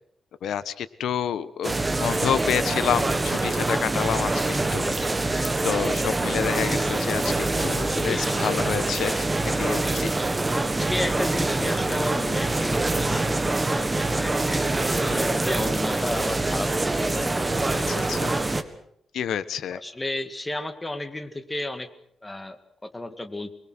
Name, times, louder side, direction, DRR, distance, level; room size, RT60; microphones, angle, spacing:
voice 1, 0.4-4.9 5.4-10.1 14.9-15.2 17.7-18.4 19.1-19.8, left 9 dB, 85° left, 15 dB, 1.3 m, -29 dB
sound 1, 1.6-18.6, right 2 dB, 15° right, 1.5 m, -25 dB
voice 2, 4.8-5.2 7.7-8.4 10.7-14.7 14.9-17.3 19.7-21.9 22.2-23.5, left 1 dB, 15° left, 10 dB, 2.0 m, -33 dB
25.0 x 22.0 x 6.3 m, 0.70 s
cardioid pair, 125°, 0 cm